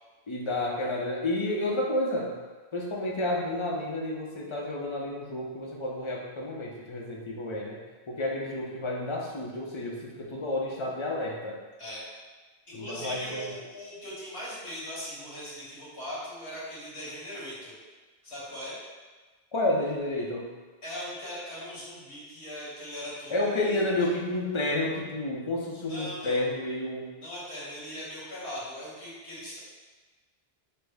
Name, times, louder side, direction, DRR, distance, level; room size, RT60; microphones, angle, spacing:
voice 1, 0.3-2.3 2.7-7.8 8.1-11.6 12.7-13.5 19.5-20.5 23.3-27.0, left 1 dB, 35° left, -2 dB, 0.6 m, -30 dB
voice 2, 12.7-17.7 18.2-18.8 20.8-24.1 25.9-26.4 27.2-29.6, equal, 75° left, -8 dB, 1.6 m, -39 dB
5.8 x 2.1 x 3.4 m, 1.3 s
omnidirectional pair, 1.1 m